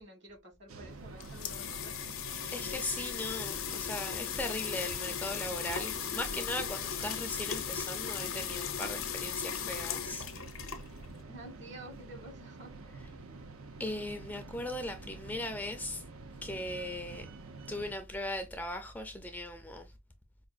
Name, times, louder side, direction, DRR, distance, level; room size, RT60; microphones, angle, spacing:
voice 1, 0.0-2.0 3.4-3.6 11.3-12.7 13.3-13.4, right 1 dB, 55° right, 1.5 m, -50 dB
sound 1, 0.7-17.9, right 3 dB, 90° right, 0.7 m, -48 dB
sound 2, 0.9-11.2, left 8 dB, 75° left, 0.7 m, -37 dB
voice 2, 2.5-10.3 13.8-16.0 16.4-17.3 17.7-19.9, left 1 dB, 10° left, 0.4 m, -38 dB
4.9 x 2.5 x 2.4 m
head